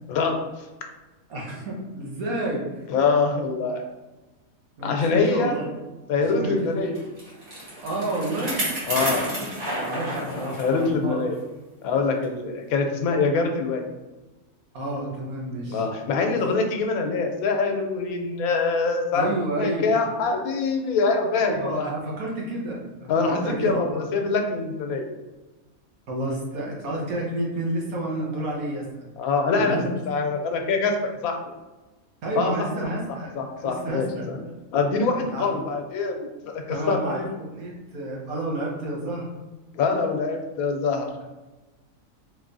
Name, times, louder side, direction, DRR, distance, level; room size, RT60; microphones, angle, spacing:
voice 1, 0.1-0.4 2.9-3.8 4.8-5.6 6.1-7.0 8.9-9.2 10.2-11.4 11.8-13.8 15.6-21.9 23.1-25.0 29.2-31.0 31.2-31.4 32.3-32.5 33.4-34.4 34.7-36.2 36.4-37.3 39.7-41.2, left 4 dB, 85° left, 4 dB, 1.1 m, -24 dB
voice 2, 1.3-2.9 4.8-5.8 6.1-6.6 7.8-8.7 9.1-9.5 9.8-11.2 14.7-15.9 16.3-16.4 19.1-19.9 21.5-24.0 26.1-29.1 29.6-29.9 32.2-34.3 35.3-35.5 36.7-39.3, right 1 dB, 85° right, -3 dB, 1.5 m, -30 dB
Bicycle, 6.9-10.9 11.3-11.4 12.2-12.3, right 1 dB, 40° right, 1.2 m, -31 dB
3.9 x 3.0 x 2.6 m, 1.2 s
omnidirectional pair, 1.5 m